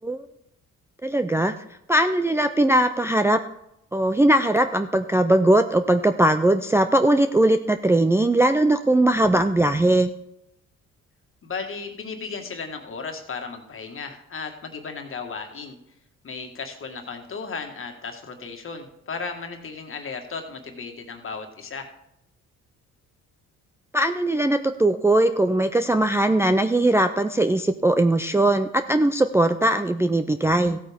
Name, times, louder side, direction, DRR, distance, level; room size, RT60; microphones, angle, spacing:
voice 1, 1.0-1.5 1.9-3.4 3.9-10.1 23.9-30.8, right 1 dB, 10° right, 7 dB, 0.4 m, -20 dB
voice 2, 11.4-15.8 16.2-21.9, left 5 dB, 45° left, 4 dB, 1.7 m, -35 dB
15.0 x 8.5 x 3.6 m, 0.80 s
cardioid pair, 90°, 30 cm